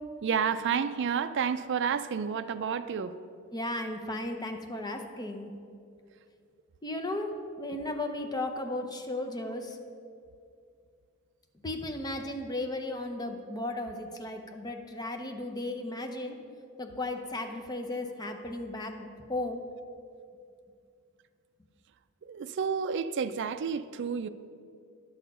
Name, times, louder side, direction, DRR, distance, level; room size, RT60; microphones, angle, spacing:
voice 1, 0.2-3.1 22.3-24.3, right 6 dB, 55° right, 0.4 m, -30 dB
voice 2, 3.5-5.5 6.8-7.3 7.6-9.8 11.6-16.4 16.8-19.6, left 2 dB, 20° left, 0.7 m, -35 dB
10.5 x 6.4 x 5.4 m
head